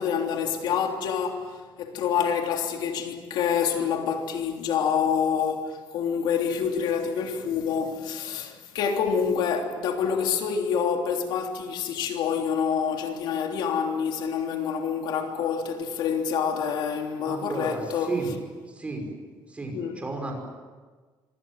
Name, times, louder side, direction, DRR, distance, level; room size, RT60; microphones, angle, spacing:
voice 1, 0.0-18.1 19.7-20.0, left 7 dB, 70° left, 3.2 m, -27 dB
voice 2, 17.2-18.3 18.7-19.0 19.5-20.3, right 3 dB, 15° right, 5.7 m, -32 dB
25.5 x 25.5 x 7.6 m
cardioid pair, 160°, 8 cm